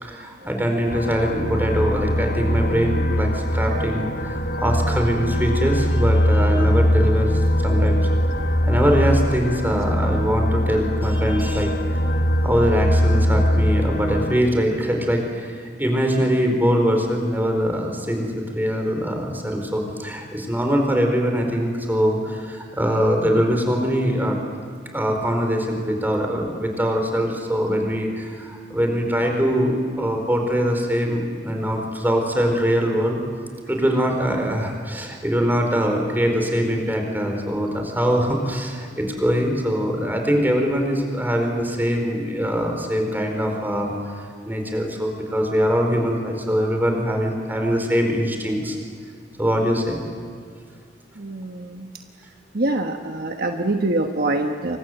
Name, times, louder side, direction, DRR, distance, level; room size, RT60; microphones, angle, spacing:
voice 1, 0.0-8.1 8.6-11.7 12.4-24.4 24.9-33.2 33.6-44.2 44.4-48.8 49.4-50.0, equal, 10° right, 3 dB, 4.6 m, -22 dB
sound 1, 0.9-14.4, equal, 60° left, 2.5 m, -21 dB
voice 2, 51.2-51.9 52.5-54.8, right 2 dB, 55° right, 4 dB, 1.3 m, -25 dB
28.5 x 25.0 x 8.1 m, 2.1 s
head